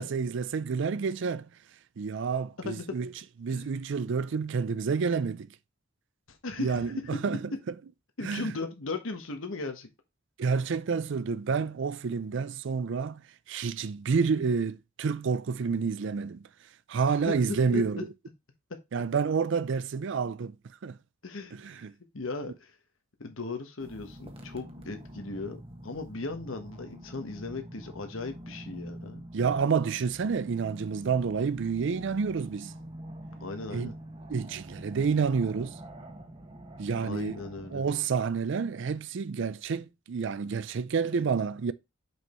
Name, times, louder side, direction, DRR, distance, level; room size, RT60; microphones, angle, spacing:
voice 1, 0.0-1.5 2.0-3.1 3.4-5.5 6.6-7.4 8.2-8.5 10.4-13.2 13.5-16.4 16.9-18.1 18.9-20.5 20.8-21.0 21.5-21.9 29.3-32.7 33.7-33.9 34.3-35.8 36.8-37.4 37.7-41.7, right 5 dB, 65° right, 0.4 m, -29 dB
voice 2, 2.6-3.0 3.5-3.7 6.3-6.9 8.2-9.9 17.1-17.4 17.7-18.0 21.2-21.9 22.1-22.7 23.2-29.3 33.4-34.0 37.0-37.9, left 3 dB, 80° left, 1.2 m, -37 dB
sound 1, 23.8-37.7, right 1 dB, 30° right, 1.5 m, -46 dB
6.3 x 5.4 x 3.0 m
head